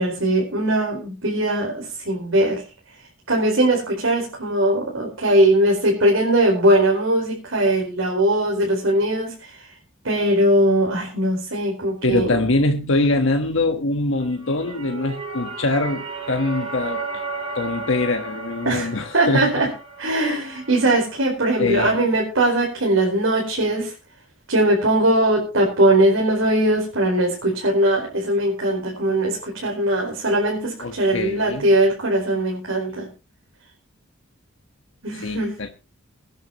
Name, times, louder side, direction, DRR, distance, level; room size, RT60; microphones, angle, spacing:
voice 1, 0.0-2.6 3.0-9.7 10.0-12.4 18.6-19.7 20.0-23.9 24.5-33.1 35.0-35.5, right 1 dB, 70° right, 4.7 m, -20 dB
voice 2, 12.0-17.2 17.5-19.5 21.6-22.0 30.8-31.7 35.2-35.7, left 2 dB, 70° left, 1.4 m, -23 dB
sound 1, 14.2-21.2, right 3 dB, 30° right, 6.0 m, -34 dB
23.5 x 10.0 x 3.0 m
head